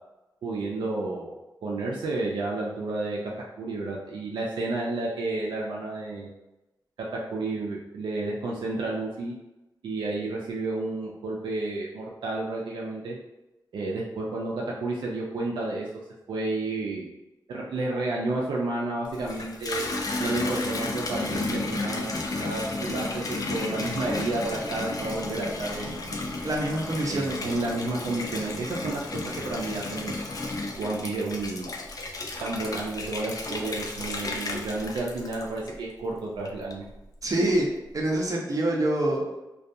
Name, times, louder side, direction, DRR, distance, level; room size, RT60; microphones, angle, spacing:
voice 1, 0.4-3.3 3.6-6.3 7.0-9.3 9.8-13.1 13.7-15.9 16.3-17.1 17.5-19.8 20.2-26.1 27.1-30.2 30.7-31.8 32.4-36.8, right 2 dB, 80° right, -3 dB, 0.4 m, -31 dB
Water tap faucet / Bathtub (filling or washing), 19.0-36.0 36.4-37.0, left 2 dB, 50° left, 0.4 m, -33 dB
voice 2, 26.4-27.4 37.2-37.7 37.9-39.2, right 1 dB, 45° right, -2 dB, 0.6 m, -25 dB
2.3 x 2.2 x 2.6 m, 0.99 s
cardioid pair, 60°, 8 cm